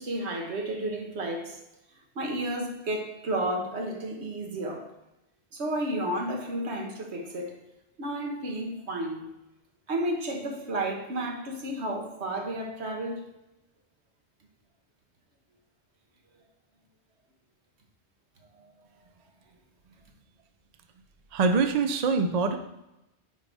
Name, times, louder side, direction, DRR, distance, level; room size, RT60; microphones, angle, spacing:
voice 1, 0.0-1.6 2.1-4.9 5.5-7.6 8.0-9.3 9.9-13.3 18.5-18.7, right 1 dB, 75° right, 1.4 m, -32 dB
voice 2, 21.3-22.6, right 4 dB, 50° right, 0.5 m, -24 dB
4.7 x 4.5 x 5.3 m
omnidirectional pair, 1.1 m